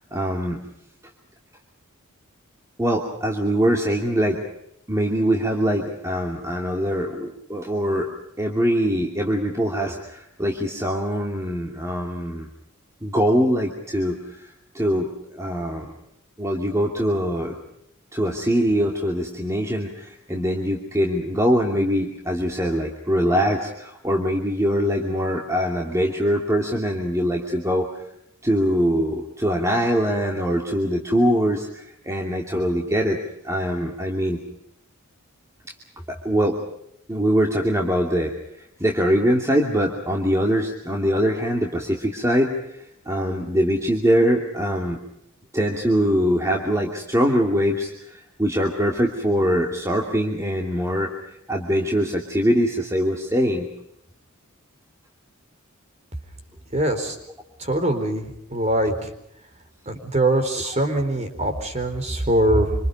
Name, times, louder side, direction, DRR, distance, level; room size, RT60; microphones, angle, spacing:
voice 1, 0.1-0.6 2.8-4.4 4.9-8.1 8.4-12.5 13.0-14.2 14.7-15.9 16.4-17.6 18.1-27.9 28.4-33.2 33.4-34.4 36.1-36.6 37.1-38.3 38.8-42.5 43.1-45.0 45.5-51.1 51.5-53.7 58.8-58.9, equal, 15° right, 0 dB, 2.6 m, -23 dB
voice 2, 56.7-57.2 57.6-58.9 59.9-62.7, right 1 dB, 30° right, 7 dB, 4.3 m, -22 dB
26.5 x 26.5 x 5.3 m, 0.79 s
head